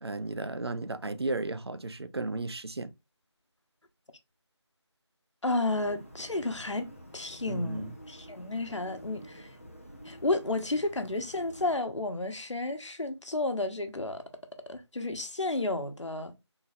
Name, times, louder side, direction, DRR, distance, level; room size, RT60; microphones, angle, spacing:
voice 1, 0.0-2.9 7.5-7.9, right 2 dB, 60° right, 0.6 m, -34 dB
voice 2, 5.4-6.9 7.1-9.6 10.0-14.2 14.7-16.4, left 2 dB, 80° left, 1.1 m, -32 dB
sound 1, 5.6-11.7, equal, 30° left, 0.7 m, -49 dB
4.0 x 4.0 x 2.4 m
figure-of-eight pair, 180°, 15 cm